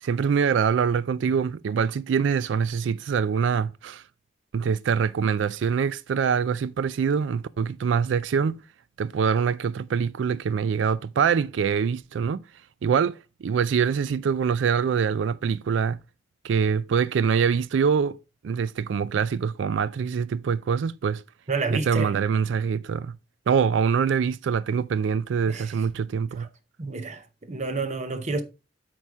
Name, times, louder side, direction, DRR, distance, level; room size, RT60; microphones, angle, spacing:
voice 1, 0.0-4.0 4.5-8.6 9.0-12.4 12.8-16.0 16.4-18.2 18.4-21.2 21.7-23.2 23.5-26.5, right 6 dB, 85° right, 0.3 m, -24 dB
voice 2, 21.5-22.1 25.5-25.8 26.4-26.5 26.8-28.4, right 3 dB, 40° right, 0.7 m, -29 dB
8.4 x 4.7 x 3.5 m
head